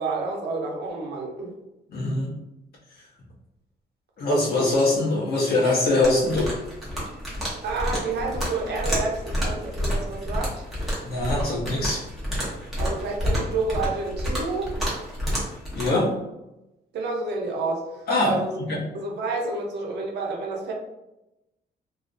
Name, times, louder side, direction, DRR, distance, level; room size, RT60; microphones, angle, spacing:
voice 1, 0.0-1.6 7.6-10.5 12.8-14.7 16.9-18.7 18.9-20.7, right 3 dB, 80° right, 0 dB, 0.6 m, -29 dB
voice 2, 1.9-2.3 4.2-6.5 11.0-12.0 15.7-16.2 18.1-18.8, left 2 dB, 65° left, -5 dB, 0.9 m, -23 dB
sound 1, 6.0-15.9, equal, ahead, 0.7 m, -29 dB
2.4 x 2.0 x 2.5 m, 0.94 s
wide cardioid pair, 165°, 17 cm